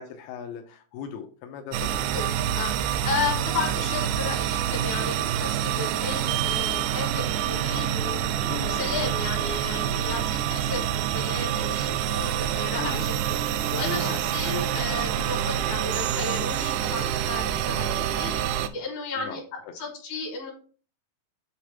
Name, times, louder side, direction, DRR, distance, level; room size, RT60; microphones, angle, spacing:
voice 1, 0.0-2.2 3.3-3.5 8.5-9.1 12.8-13.1 14.0-14.2 19.2-19.4 19.7-19.8, left 6 dB, 90° left, 4 dB, 2.3 m, -38 dB
sound 1, 1.7-18.7, right 10 dB, 85° right, 2.6 m, -27 dB
voice 2, 2.1-19.4 19.7-20.5, left 4 dB, 60° left, 1 dB, 3.0 m, -34 dB
sound 2, 10.4-18.3, left 2 dB, 40° left, 0.7 m, -54 dB
8.5 x 3.3 x 5.8 m, 0.40 s
omnidirectional pair, 5.5 m